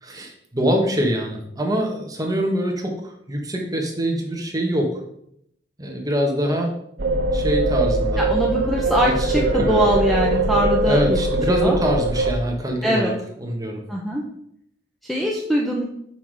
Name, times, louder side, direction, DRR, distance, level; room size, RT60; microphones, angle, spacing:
voice 1, 0.0-5.0 5.8-6.7 7.3-8.2 9.0-9.3 9.6-9.8 10.9-13.1 13.4-13.8, equal, 20° right, 1 dB, 1.4 m, -24 dB
sound 1, 7.0-12.3, right 2 dB, 80° right, 0.9 m, -21 dB
voice 2, 8.2-11.2 11.5-11.8 12.8-13.1 13.9-14.2 15.0-15.9, equal, ahead, -2 dB, 0.8 m, -22 dB
6.0 x 5.8 x 4.8 m, 0.73 s
head